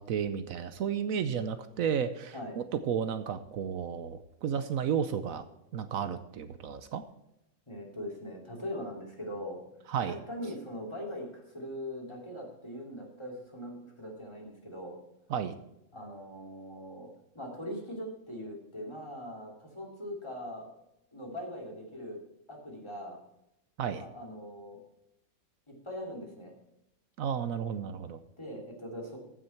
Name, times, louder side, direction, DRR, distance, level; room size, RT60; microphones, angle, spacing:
voice 1, 0.0-5.4 5.7-7.0 9.9-10.2 15.3-15.5 23.8-24.0 27.2-28.2, right 7 dB, 75° right, 11 dB, 1.1 m, -32 dB
voice 2, 7.7-9.6 10.0-15.0 15.9-20.7 21.1-22.2 22.5-23.2 23.9-24.8 25.7-26.5 28.4-29.2, equal, 20° left, 0 dB, 2.9 m, -41 dB
15.0 x 6.5 x 4.5 m, 0.83 s
omnidirectional pair, 1.5 m